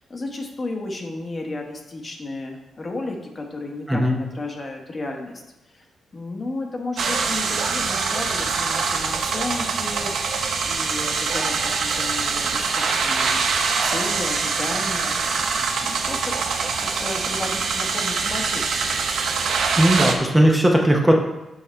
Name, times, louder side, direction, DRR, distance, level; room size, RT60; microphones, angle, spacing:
voice 1, 0.0-5.4 5.7-5.9 6.1-10.1 10.7-13.4 13.8-16.4 16.8-19.0, left 2 dB, 30° left, 2 dB, 1.0 m, -33 dB
voice 2, 3.9-4.2 19.8-21.1, right 1 dB, 10° right, 1 dB, 0.7 m, -17 dB
sound 1, 7.0-20.1, right 5 dB, 70° right, 0.8 m, -24 dB
7.4 x 4.2 x 4.3 m, 1.0 s
cardioid pair, 110°, 0 cm